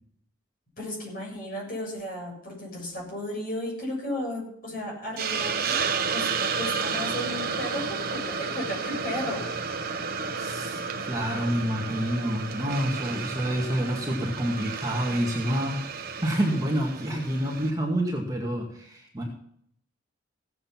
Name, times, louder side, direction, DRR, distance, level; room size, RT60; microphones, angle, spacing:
voice 1, 0.8-5.8 6.1-6.3 6.6-9.9, left 1 dB, 45° left, -3 dB, 7.0 m, -34 dB
Hiss, 5.2-17.7, right 5 dB, 45° right, 1.1 m, -32 dB
voice 2, 10.3-19.2, equal, 15° right, -1 dB, 2.1 m, -28 dB
16.0 x 8.1 x 5.9 m, 0.66 s
head